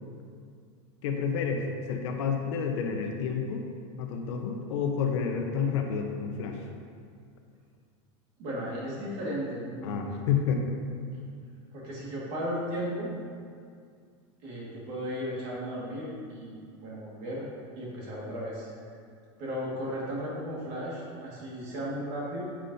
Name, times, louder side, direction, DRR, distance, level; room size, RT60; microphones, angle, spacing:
voice 1, 1.0-3.6 4.0-6.6 9.8-10.7, left 6 dB, 75° left, 3 dB, 1.0 m, -29 dB
voice 2, 8.4-10.0 11.7-13.1 14.4-17.5 17.8-18.7 19.4-22.4, equal, 45° right, -5 dB, 2.0 m, -35 dB
10.0 x 6.2 x 2.8 m, 2.2 s
supercardioid pair, 165°, 15 cm